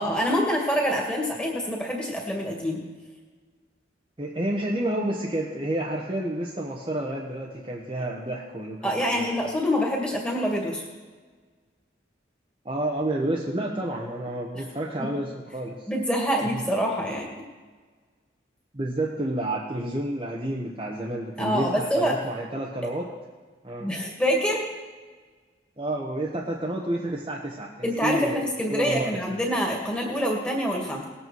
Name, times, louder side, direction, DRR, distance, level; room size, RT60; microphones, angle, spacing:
voice 1, 0.0-2.8 8.8-10.9 15.0-15.1 15.9-17.3 21.4-22.1 23.8-24.6 27.8-31.0, equal, 5° left, -1 dB, 2.3 m, -26 dB
voice 2, 4.2-9.3 12.6-15.9 18.7-23.1 23.6-23.9 25.8-29.1, right 1 dB, 25° right, -3 dB, 1.1 m, -30 dB
19.5 x 8.3 x 4.6 m, 1.4 s
head